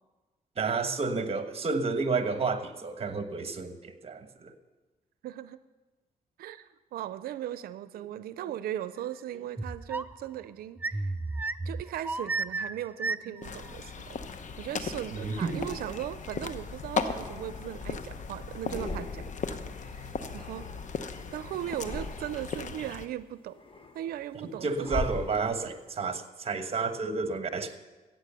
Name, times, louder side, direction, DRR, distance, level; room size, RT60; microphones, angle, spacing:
voice 1, 0.6-4.5 15.1-15.6 24.6-27.8, right 4 dB, 40° right, 9 dB, 1.2 m, -31 dB
voice 2, 5.2-5.6 6.4-11.1 11.6-14.2 14.6-19.3 19.8-20.7 21.3-23.6 23.9-25.0, right 12 dB, 85° right, 14 dB, 0.5 m, -38 dB
sound 1, 9.6-10.2 10.8-13.5, right 3 dB, 10° right, 0.4 m, -33 dB
sound 2, 13.4-23.1, left 5 dB, 55° left, 1.0 m, -37 dB
sound 3, 13.6-14.8 15.5-16.4 16.9-18.2 18.5-19.6 19.8-21.2 21.6-22.7 23.1-25.9, left 2 dB, 35° left, 1.4 m, -41 dB
14.0 x 8.9 x 6.8 m, 1.2 s
cardioid pair, 85°, 15 cm